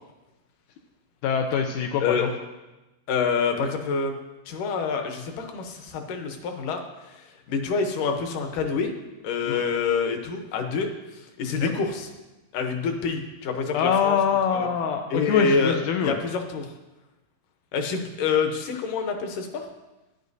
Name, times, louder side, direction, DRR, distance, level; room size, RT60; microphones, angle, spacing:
voice 1, 1.2-2.3 9.5-9.6 11.6-11.7 13.7-16.2, left 7 dB, 90° left, 4 dB, 1.7 m, -24 dB
voice 2, 3.1-4.2 4.5-6.8 7.1-8.9 9.2-10.9 11.4-12.1 12.5-14.2 14.5-14.7 15.1-16.7 17.7-19.6, left 5 dB, 70° left, 4 dB, 2.3 m, -27 dB
13.0 x 10.0 x 2.7 m, 1.1 s
omnidirectional pair, 4.2 m